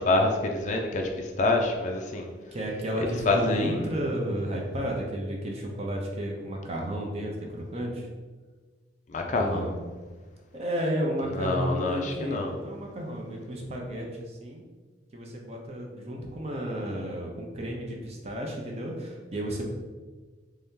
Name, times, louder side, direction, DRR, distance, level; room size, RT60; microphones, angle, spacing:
voice 1, 0.0-2.3 3.3-3.9 9.1-9.6 11.2-12.5, left 2 dB, 40° left, 2 dB, 0.4 m, -26 dB
voice 2, 2.5-8.1 9.3-9.7 10.5-14.6 15.1-19.6, equal, 35° right, 0 dB, 0.5 m, -32 dB
3.3 x 2.7 x 3.6 m, 1.3 s
head